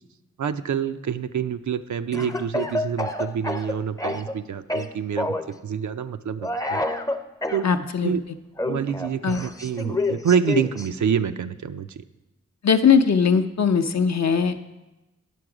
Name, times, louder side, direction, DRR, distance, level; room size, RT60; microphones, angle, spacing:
voice 1, 0.4-6.8 7.5-8.2 8.6-12.0, right 7 dB, 70° right, 10 dB, 0.5 m, -27 dB
Speech / Cough, 2.1-4.4 4.7-5.5 6.4-7.6 8.6-10.9, left 2 dB, 10° left, 0.5 m, -28 dB
voice 2, 7.6-8.1 9.2-9.4 12.6-14.6, left 6 dB, 60° left, 8 dB, 0.6 m, -20 dB
9.3 x 6.0 x 4.8 m, 1.0 s
cardioid pair, 40°, 30 cm